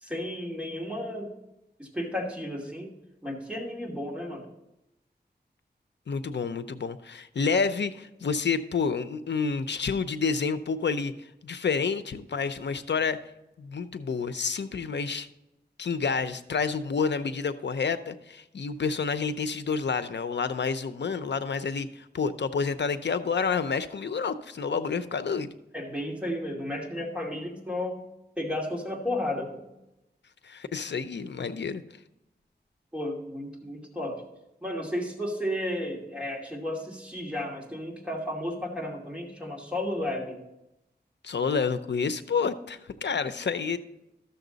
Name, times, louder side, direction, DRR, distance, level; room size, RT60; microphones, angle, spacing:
voice 1, 0.0-1.3 1.8-2.9 3.2-4.5 25.7-28.1 28.4-29.6 32.9-34.2 34.6-40.4 43.4-43.5, left 1 dB, 5° right, -1 dB, 2.5 m, -33 dB
voice 2, 6.1-11.1 11.4-13.2 13.6-15.3 15.8-25.5 30.4-31.8 41.2-43.8, left 5 dB, 80° left, 11 dB, 0.6 m, -29 dB
13.0 x 7.0 x 4.0 m, 0.90 s
wide cardioid pair, 60°, 18 cm